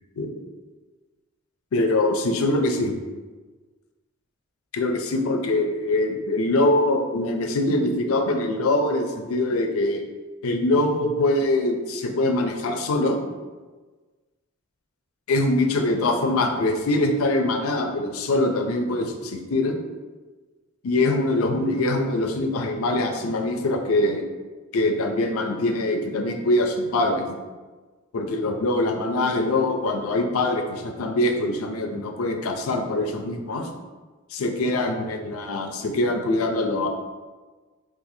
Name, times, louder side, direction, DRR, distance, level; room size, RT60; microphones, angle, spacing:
voice 1, 1.7-2.9 4.7-10.0 10.4-13.2 15.3-19.8 20.8-24.2 24.7-27.2 28.1-33.7 34.3-36.9, left 2 dB, 80° left, 5 dB, 0.4 m, -23 dB
4.1 x 2.4 x 2.6 m, 1.3 s
head